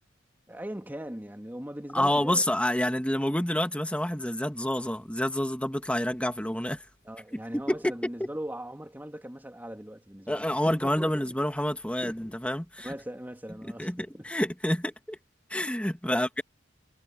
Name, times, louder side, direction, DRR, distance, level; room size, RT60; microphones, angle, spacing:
voice 1, 0.5-2.4 7.0-11.4 12.0-12.3 12.8-14.3 16.1-16.4, right 1 dB, 10° right, 2.4 m, -40 dB
voice 2, 1.9-6.8 7.7-7.9 10.3-12.9 13.8-15.2 15.5-16.4, left 1 dB, 5° left, 1.9 m, -28 dB
head